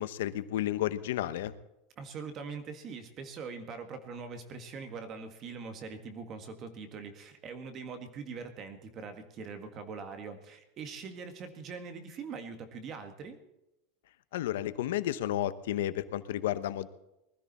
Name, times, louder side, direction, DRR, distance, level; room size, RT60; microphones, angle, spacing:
voice 1, 0.0-1.5 14.3-16.9, left 12 dB, 75° left, 13 dB, 1.0 m, -32 dB
voice 2, 2.0-13.4, right 5 dB, 25° right, 7 dB, 1.7 m, -42 dB
20.0 x 13.5 x 4.2 m, 0.90 s
supercardioid pair, 175°, 0 cm